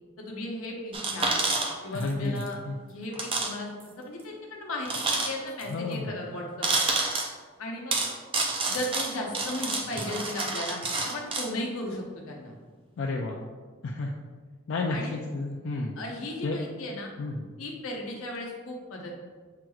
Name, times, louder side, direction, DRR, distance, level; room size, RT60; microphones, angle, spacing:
voice 1, 0.2-1.4 1.8-2.6 2.9-3.7 4.0-6.7 7.6-8.0 8.7-12.5 14.9-15.1 16.0-17.1 17.6-19.2, left 1 dB, 80° left, 0 dB, 0.8 m, -35 dB
sound 1, 0.9-2.1 2.4-2.5 3.1-3.5 3.8-3.9 4.9-5.6 6.6-7.3 7.9-11.5, right 3 dB, 25° right, 0.3 m, -28 dB
voice 2, 1.9-2.8 5.7-6.1 13.0-13.4 13.8-14.1 14.7-16.0 16.4-16.6 17.2-17.4, left 3 dB, 60° left, -1 dB, 0.3 m, -31 dB
5.8 x 3.0 x 2.3 m, 1.5 s
head